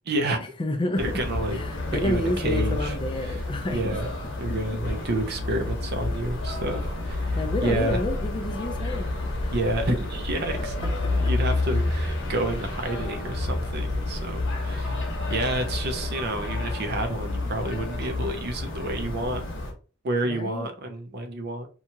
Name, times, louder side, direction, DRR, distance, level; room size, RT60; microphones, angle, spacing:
voice 1, 0.1-0.5 1.0-1.6 1.9-3.0 3.2-3.4 3.7-4.1 4.4-8.0 9.5-15.0 15.3-19.4 20.0-21.7, right 2 dB, 50° right, 0.5 m, -29 dB
voice 2, 0.6-1.0 1.5-3.8 7.3-9.1 9.4-9.5 20.3-20.7, left 1 dB, 25° left, 0.4 m, -29 dB
sound 1, 1.0-19.7, left 2 dB, 60° left, 0.9 m, -29 dB
2.9 x 2.3 x 2.7 m
head